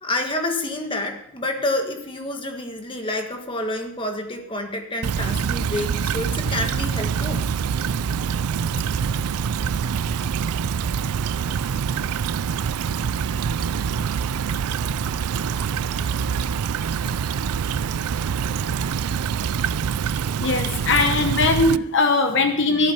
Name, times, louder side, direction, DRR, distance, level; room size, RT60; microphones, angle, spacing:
voice 1, 0.0-7.4 14.5-14.6 17.1-17.2 22.8-22.9, left 1 dB, 20° left, 4 dB, 1.5 m, -29 dB
Stream / Trickle dribble, 5.0-21.8, right 7 dB, 85° right, 0.4 m, -25 dB
voice 2, 20.4-22.9, left 3 dB, 55° left, 6 dB, 0.9 m, -20 dB
14.0 x 12.0 x 4.4 m, 0.72 s
head